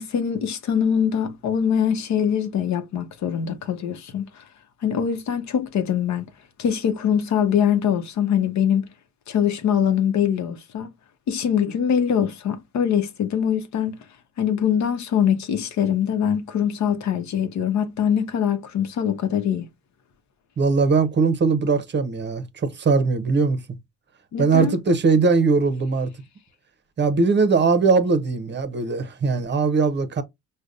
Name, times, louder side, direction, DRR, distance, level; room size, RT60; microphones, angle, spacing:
voice 1, 0.0-4.3 4.8-6.3 6.6-8.8 9.3-10.9 11.3-14.0 14.4-19.6 24.3-24.8, left 8 dB, 65° left, 0.8 m, -23 dB
voice 2, 20.6-23.6 24.4-26.1 27.0-30.2, right 4 dB, 35° right, 0.7 m, -20 dB
5.0 x 2.2 x 2.4 m
cardioid pair, 90°, 30 cm